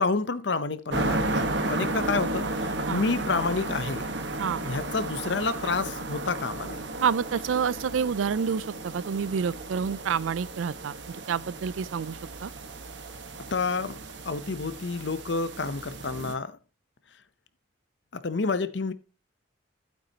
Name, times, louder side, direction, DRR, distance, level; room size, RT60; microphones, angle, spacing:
voice 1, 0.0-4.1 4.6-6.8 13.4-14.0 14.2-16.6 18.1-18.9, left 4 dB, 65° left, 0.7 m, -29 dB
sound 1, 0.9-16.3, right 2 dB, 65° right, 1.3 m, -34 dB
voice 2, 7.0-12.5, right 6 dB, 90° right, 0.4 m, -28 dB
12.0 x 8.9 x 2.9 m
head